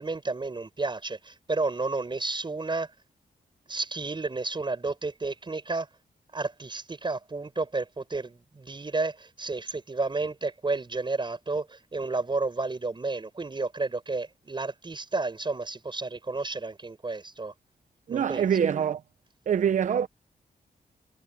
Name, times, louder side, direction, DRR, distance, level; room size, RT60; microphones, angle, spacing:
voice 1, 0.0-2.9 3.7-5.9 6.3-17.5 18.1-18.5, right 3 dB, 30° right, 4.9 m, -31 dB
voice 2, 18.1-19.0 19.5-20.1, right 8 dB, 50° right, 0.5 m, -24 dB
wide cardioid pair, 100°, 16 cm